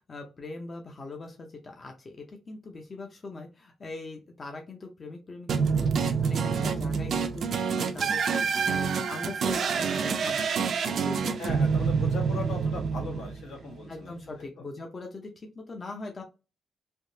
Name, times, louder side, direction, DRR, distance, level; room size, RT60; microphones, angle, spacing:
voice 1, 0.1-5.9 6.2-7.5 7.7-8.4 8.6-10.5 10.9-11.6 11.9-12.0 13.8-16.2, left 3 dB, 30° left, 2 dB, 0.6 m, -41 dB
sound 1, 5.5-13.7, right 6 dB, 50° right, 0.4 m, -27 dB
voice 2, 11.4-14.2 14.6-14.7, left 3 dB, 80° left, 1 dB, 1.3 m, -38 dB
3.5 x 2.8 x 2.7 m, 0.29 s
cardioid pair, 160°, 0 cm